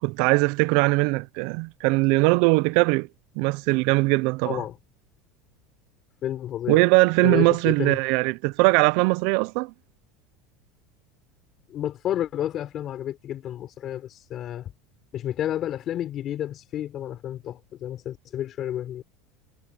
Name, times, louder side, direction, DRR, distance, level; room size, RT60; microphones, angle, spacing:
voice 1, 0.0-3.1 3.4-4.6 6.7-9.7, right 25 dB, 50° right, 0.5 m, -21 dB
voice 2, 4.4-4.7 6.2-6.8 7.2-8.0 11.7-14.7 15.1-19.0, left 11 dB, 30° left, 4.2 m, -30 dB
cardioid pair, 180°, 0 cm